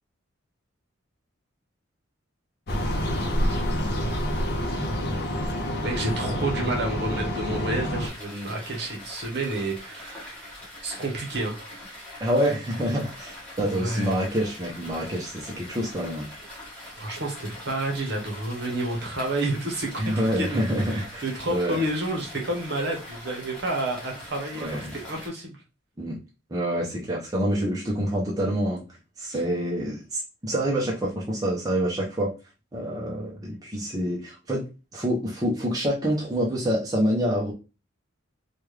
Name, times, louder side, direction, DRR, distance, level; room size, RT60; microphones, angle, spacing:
sound 1, 2.7-8.1, equal, 50° left, 0.6 m, -27 dB
voice 1, 5.8-10.3 10.8-11.7 13.7-14.2 17.0-19.9 20.3-25.5 29.3-29.4, right 2 dB, 55° right, 1 dB, 1.0 m, -30 dB
sound 2, 8.0-25.3, left 1 dB, 5° left, 1.2 m, -43 dB
voice 2, 12.2-16.3 20.0-21.8 24.5-24.9 26.0-26.2 26.5-28.8 29.2-32.3 32.7-34.6 34.9-37.5, equal, 20° right, -4 dB, 0.6 m, -27 dB
3.3 x 2.3 x 3.2 m, 0.30 s
head